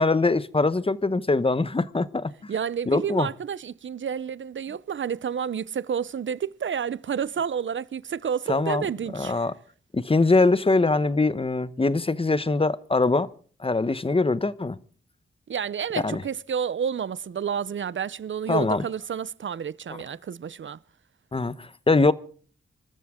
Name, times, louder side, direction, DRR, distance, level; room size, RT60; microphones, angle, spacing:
voice 1, 0.0-2.3 2.9-3.3 8.5-8.9 9.1-9.5 9.9-13.3 13.6-14.8 16.0-16.2 18.5-18.8 21.3-22.1, left 3 dB, 25° left, 1.0 m, -22 dB
voice 2, 2.5-9.5 15.5-20.8, right 7 dB, 65° right, 0.7 m, -30 dB
26.5 x 13.5 x 3.7 m
wide cardioid pair, 75°, 21 cm